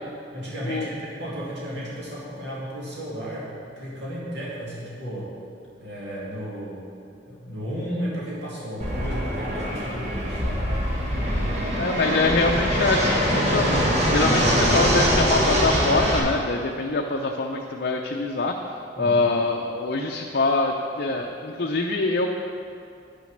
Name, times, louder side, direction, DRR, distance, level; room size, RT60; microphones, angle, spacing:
voice 1, 0.3-5.3 5.8-6.9 7.3-10.6 19.0-19.2 21.1-21.2, equal, 70° right, -7 dB, 2.5 m, -34 dB
Fixed-wing aircraft airplane, 8.8-16.2, equal, 40° right, 1.7 m, -23 dB
voice 2, 11.8-13.8 14.1-18.5 19.0-22.3, left 3 dB, 60° left, 1 dB, 0.6 m, -24 dB
9.9 x 6.3 x 6.5 m, 2.5 s
head